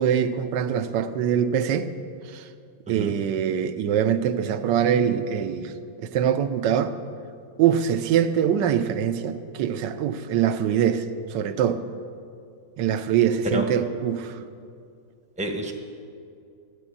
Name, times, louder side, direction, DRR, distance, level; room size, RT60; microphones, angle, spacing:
voice 1, 0.0-1.9 2.3-2.4 2.9-5.7 6.0-6.9 7.6-11.0 11.3-11.8 12.8-14.4, right 9 dB, 75° right, 11 dB, 1.3 m, -23 dB
voice 2, 15.4-15.7, right 1 dB, 5° right, 3 dB, 0.8 m, -28 dB
12.5 x 8.6 x 8.5 m, 2.4 s
omnidirectional pair, 2.0 m